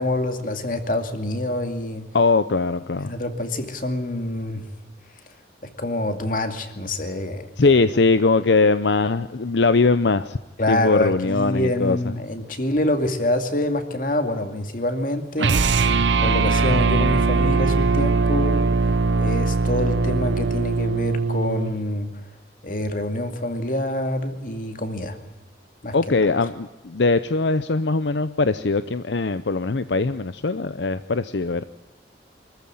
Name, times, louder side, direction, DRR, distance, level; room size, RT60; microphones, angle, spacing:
voice 1, 0.0-2.1 3.0-4.6 5.6-7.5 10.6-15.6 16.2-18.6 19.2-22.1 22.6-25.2 25.8-26.0, left 1 dB, 45° left, 7 dB, 2.4 m, -26 dB
voice 2, 2.1-3.1 7.6-10.4 10.7-12.0 25.9-31.6, left 3 dB, 75° left, 12 dB, 0.7 m, -21 dB
sound 1, 15.4-21.8, right 4 dB, 85° right, 0.7 m, -20 dB
25.0 x 14.5 x 8.9 m, 1.1 s
head